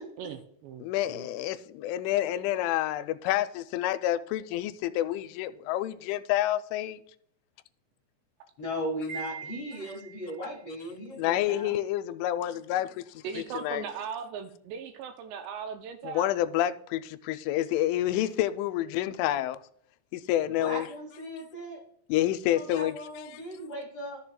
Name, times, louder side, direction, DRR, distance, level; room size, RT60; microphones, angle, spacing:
voice 1, 0.2-1.3 13.2-16.3, right 7 dB, 85° right, 2.5 m, -39 dB
voice 2, 0.8-7.0 11.2-13.2 13.5-13.8 16.0-19.6 20.1-20.8 22.1-23.0 23.3-23.4, left 13 dB, 90° left, 3.0 m, -28 dB
voice 3, 8.6-11.7 20.6-21.8 22.5-24.2, equal, 65° left, 1.6 m, -37 dB
Wind chime, 9.1-10.5, right 7 dB, 45° right, 2.9 m, -42 dB
13.0 x 7.2 x 2.2 m
omnidirectional pair, 5.4 m